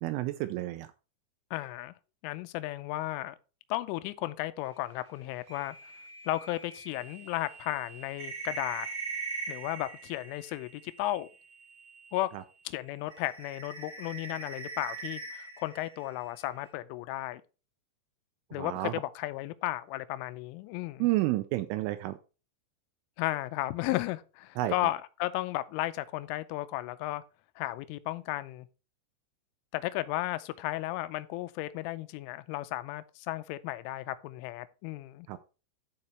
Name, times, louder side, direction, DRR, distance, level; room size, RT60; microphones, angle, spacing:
voice 1, 0.0-0.9 12.3-12.4 18.6-18.9 21.0-22.2 24.6-24.7 35.3-35.4, right 16 dB, 80° right, 3.0 m, -30 dB
voice 2, 1.5-1.9 2.2-3.4 3.7-5.8 6.3-8.9 9.5-11.3 12.1-12.3 12.7-17.4 18.5-21.1 23.2-27.2 27.6-28.7 29.7-35.3, left 16 dB, 85° left, 3.0 m, -34 dB
sound 1, 5.5-12.3 12.7-16.7, right 4 dB, 45° right, 4.5 m, -42 dB
11.0 x 4.9 x 4.2 m
omnidirectional pair, 5.8 m